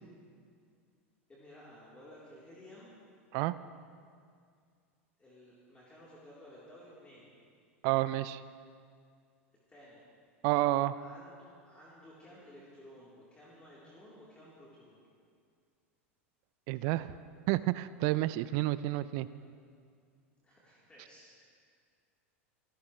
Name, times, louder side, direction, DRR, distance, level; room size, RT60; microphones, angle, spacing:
voice 1, 1.3-2.9 5.2-7.3 9.7-10.0 10.9-11.4 11.6-15.0 20.4-21.4, equal, 15° left, -8 dB, 3.7 m, -54 dB
voice 2, 7.8-8.4 10.4-10.9 16.7-17.1 17.5-19.3, right 17 dB, 55° right, 16 dB, 0.5 m, -30 dB
27.0 x 12.5 x 3.2 m, 2.2 s
hypercardioid pair, 90°, 7 cm